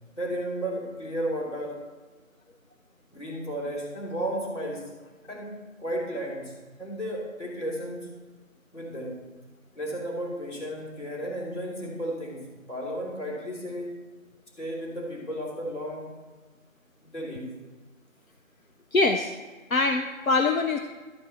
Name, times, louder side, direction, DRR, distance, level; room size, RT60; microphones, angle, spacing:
voice 1, 0.2-1.8 3.1-4.9 5.3-5.5 5.8-6.5 6.8-8.1 8.7-9.2 9.7-14.0 14.6-16.1 17.0-17.5, equal, 60° left, -2 dB, 3.3 m, -33 dB
voice 2, 18.9-19.3 19.7-20.8, left 3 dB, 90° left, 6 dB, 0.9 m, -23 dB
12.0 x 8.1 x 4.3 m, 1.3 s
figure-of-eight pair, 175°, 41 cm